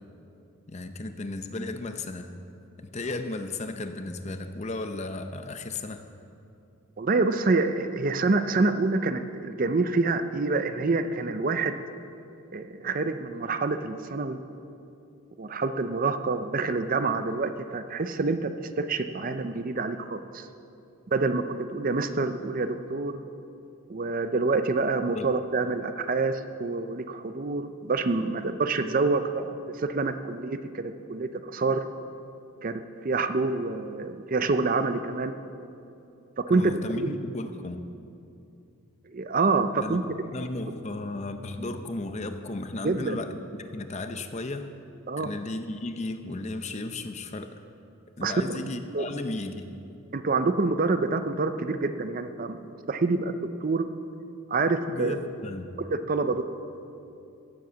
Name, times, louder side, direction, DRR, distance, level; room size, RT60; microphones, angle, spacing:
voice 1, 0.7-2.4 2.8-6.1 25.1-25.3 36.5-37.9 39.8-44.7 45.2-47.6 48.2-49.7 54.9-55.8, left 2 dB, 30° left, 8 dB, 0.6 m, -35 dB
voice 2, 7.0-11.8 12.5-14.4 15.4-20.5 21.1-23.2 23.9-31.8 32.6-35.4 36.4-37.1 39.1-40.0 42.8-43.2 45.1-45.3 48.2-49.1 50.1-53.9 54.5-55.2 55.8-56.4, right 3 dB, 40° right, 10 dB, 0.5 m, -27 dB
16.5 x 7.8 x 6.9 m, 2.7 s
head